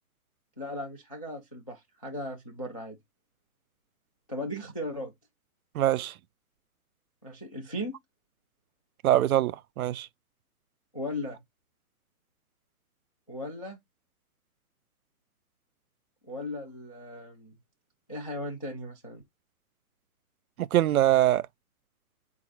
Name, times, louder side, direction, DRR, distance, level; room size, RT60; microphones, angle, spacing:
voice 1, 0.6-3.0 4.3-5.1 7.2-7.9 10.9-11.4 13.3-13.8 16.2-17.6 18.1-19.2, left 1 dB, 25° left, 0.3 m, -37 dB
voice 2, 5.7-6.1 9.0-10.1 20.6-21.4, right 13 dB, 75° right, 0.5 m, -23 dB
4.2 x 2.3 x 4.5 m
hypercardioid pair, 160°, 44 cm